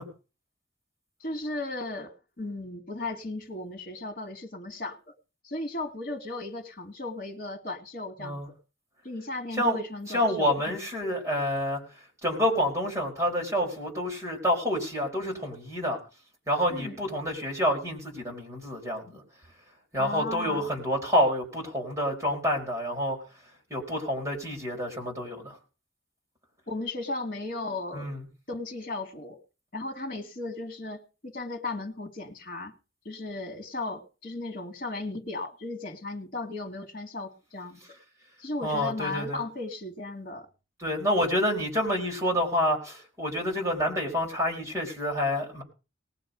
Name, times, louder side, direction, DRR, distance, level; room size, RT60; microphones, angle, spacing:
voice 1, 1.2-5.0 5.4-8.5 9.0-10.7 16.7-17.0 20.0-20.7 26.7-28.1 28.5-29.4 29.7-32.7 33.0-37.8 38.4-40.5, left 2 dB, 45° left, 5 dB, 2.4 m, -36 dB
voice 2, 10.1-11.8 12.2-16.0 16.5-19.2 19.9-23.2 23.7-25.6 27.9-28.2 38.6-39.4 40.8-45.6, equal, 15° right, -2 dB, 4.9 m, -28 dB
19.5 x 6.9 x 5.2 m, 0.33 s
head